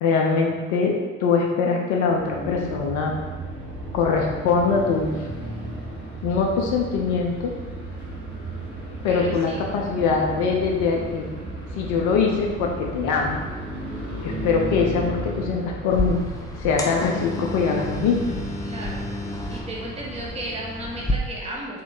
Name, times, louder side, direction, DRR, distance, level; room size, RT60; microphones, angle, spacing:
voice 1, 0.0-3.1 3.9-5.2 6.2-7.5 9.0-11.3 11.7-13.4 14.2-16.2 16.6-18.5, left 5 dB, 50° left, 0 dB, 0.6 m, -23 dB
sound 1, 2.1-20.8, right 1 dB, 90° right, 1.3 m, -35 dB
voice 2, 9.1-9.7 18.6-19.0 19.5-21.8, right 1 dB, 15° right, -3 dB, 0.8 m, -34 dB
sound 2, 15.9-21.1, left 1 dB, 10° left, 0.3 m, -31 dB
3.6 x 3.0 x 3.5 m, 1.3 s
figure-of-eight pair, 55°, 40 cm